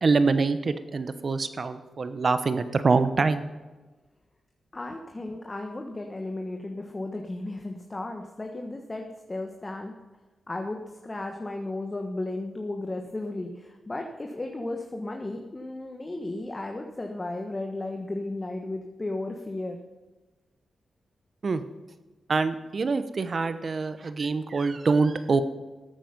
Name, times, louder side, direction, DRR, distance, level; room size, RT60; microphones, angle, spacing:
voice 1, 0.0-3.4 21.4-21.6 22.3-25.4, right 4 dB, 55° right, 11 dB, 1.0 m, -25 dB
voice 2, 4.7-9.9 10.5-19.8, left 2 dB, 30° left, 3 dB, 1.4 m, -34 dB
14.5 x 8.5 x 5.3 m, 1.2 s
cardioid pair, 50°, 0 cm